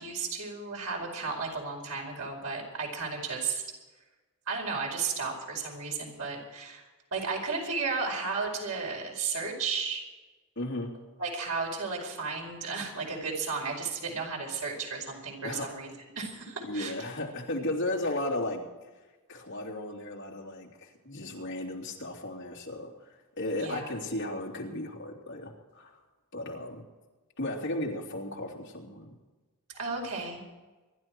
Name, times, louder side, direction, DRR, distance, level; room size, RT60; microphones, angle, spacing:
voice 1, 0.0-3.6 4.5-6.8 7.1-10.0 11.2-16.9 23.6-23.9 29.7-30.4, right 4 dB, 85° right, 0 dB, 4.9 m, -34 dB
voice 2, 10.6-10.9 15.4-15.7 16.6-18.6 19.3-26.0 26.3-26.8 27.4-29.1, left 1 dB, 55° left, -2 dB, 3.2 m, -35 dB
25.0 x 11.5 x 4.6 m, 1.2 s
head